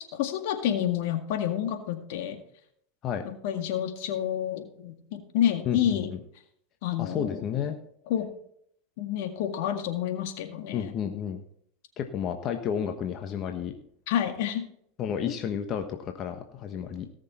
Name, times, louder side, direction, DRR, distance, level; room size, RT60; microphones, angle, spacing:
voice 1, 0.1-2.4 3.4-6.1 6.8-7.4 8.1-8.3 9.0-10.9 14.1-14.7 15.3-15.4, left 10 dB, 70° left, 6 dB, 1.9 m, -29 dB
voice 2, 5.6-6.2 7.0-7.8 10.7-11.4 12.0-13.7 15.0-17.1, left 8 dB, 45° left, 5 dB, 1.3 m, -31 dB
18.0 x 6.6 x 4.4 m, 0.68 s
hypercardioid pair, 100°, 0 cm